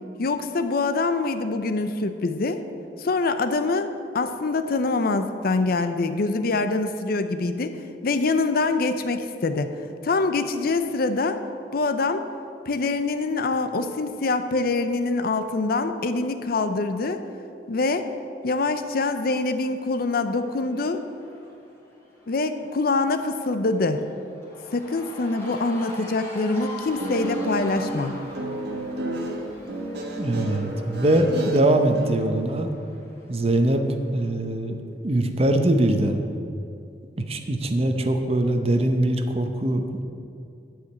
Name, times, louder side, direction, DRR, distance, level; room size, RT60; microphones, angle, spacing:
voice 1, 0.2-2.6 3.0-7.8 8.0-9.8 10.0-11.4 11.7-12.3 12.7-17.2 17.7-18.1 18.4-21.0 22.3-24.0 24.7-28.2, left 3 dB, 60° left, 9 dB, 0.6 m, -24 dB
Cheering / Crowd, 19.2-34.2, left 1 dB, 15° left, 1.9 m, -44 dB
Guitar, 26.8-32.1, right 1 dB, 65° right, 1.4 m, -31 dB
voice 2, 30.2-32.7 33.3-34.8 35.0-36.3 37.2-40.0, right 1 dB, 35° right, 6 dB, 0.8 m, -22 dB
10.0 x 5.0 x 7.9 m, 2.5 s
head